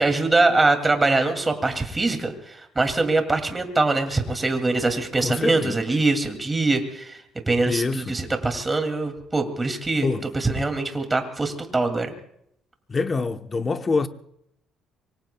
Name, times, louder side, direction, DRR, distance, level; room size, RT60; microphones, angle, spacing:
voice 1, 0.0-7.2 7.5-12.1, right 3 dB, 15° right, 2.5 m, -23 dB
voice 2, 5.2-5.8 7.7-8.2 10.0-10.3 12.9-14.1, left 4 dB, 25° left, 0.9 m, -25 dB
25.0 x 24.0 x 2.3 m
cardioid pair, 130°, 0 cm